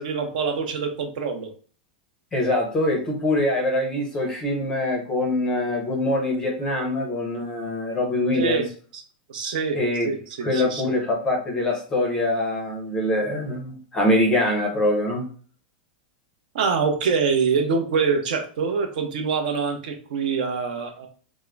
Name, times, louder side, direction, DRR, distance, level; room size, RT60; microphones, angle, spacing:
voice 1, 0.0-1.5 8.3-8.6 8.9-9.0 9.3-9.8 10.0-10.8 16.5-21.1, right 5 dB, 55° right, 5 dB, 0.6 m, -25 dB
voice 2, 2.3-8.6 9.7-10.1 10.4-15.3, left 1 dB, 10° left, 1 dB, 0.6 m, -24 dB
3.5 x 2.0 x 3.3 m, 0.42 s
supercardioid pair, 180°, 5 cm